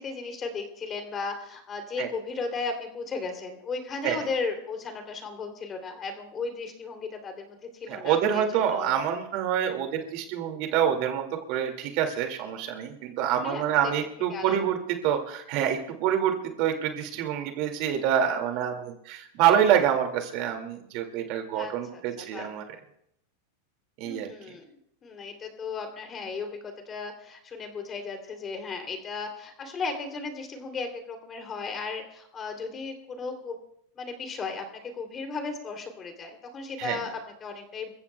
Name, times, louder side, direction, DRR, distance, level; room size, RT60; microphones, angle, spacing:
voice 1, 0.0-9.0 13.4-13.9 14.3-14.6 21.5-22.5 24.0-24.7 25.0-33.6 33.9-37.9, left 4 dB, 25° left, 4 dB, 2.9 m, -35 dB
voice 2, 7.9-22.6 24.0-24.3 36.8-37.0, right 9 dB, 50° right, 4 dB, 2.2 m, -26 dB
28.5 x 15.0 x 2.3 m, 0.75 s
supercardioid pair, 135°, 0 cm